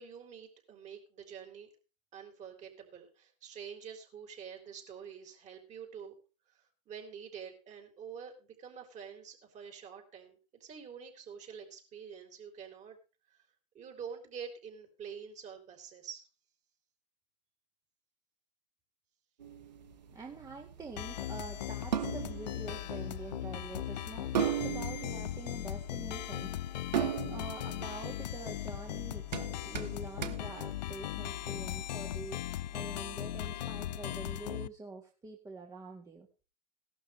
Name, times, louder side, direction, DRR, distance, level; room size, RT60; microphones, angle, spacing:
voice 1, 0.0-1.7 2.1-6.1 6.5-13.0 13.3-13.4 13.7-16.3, right 7 dB, 35° right, 4 dB, 4.2 m, -47 dB
sound 1, 19.4-31.5, right 9 dB, 85° right, 1.4 m, -38 dB
voice 2, 20.1-36.3, right 3 dB, 15° right, 1 dB, 1.9 m, -46 dB
sound 2, 21.0-34.7, left 12 dB, 80° left, 0.5 m, -38 dB
17.0 x 12.0 x 3.3 m, 0.33 s
hypercardioid pair, 105°, 21 cm